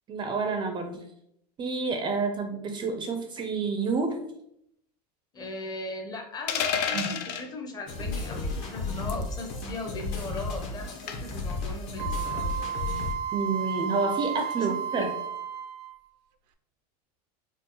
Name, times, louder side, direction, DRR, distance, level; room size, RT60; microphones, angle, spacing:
voice 1, 0.1-1.0 1.6-4.2 6.9-7.1 13.3-15.1, right 4 dB, 20° right, 5 dB, 0.4 m, -29 dB
voice 2, 5.3-12.5 14.6-15.1, left 2 dB, 20° left, 3 dB, 0.7 m, -38 dB
sound 1, 6.5-7.5 9.1-9.3 11.1-11.4, left 7 dB, 70° left, 0.6 m, -29 dB
sound 2, 7.9-13.1, left 3 dB, 50° left, 1.1 m, -33 dB
Wind instrument woodwind instrument, 12.0-16.1, right 8 dB, 80° right, 0.4 m, -33 dB
4.4 x 2.3 x 3.0 m, 0.75 s
supercardioid pair, 130°, 21 cm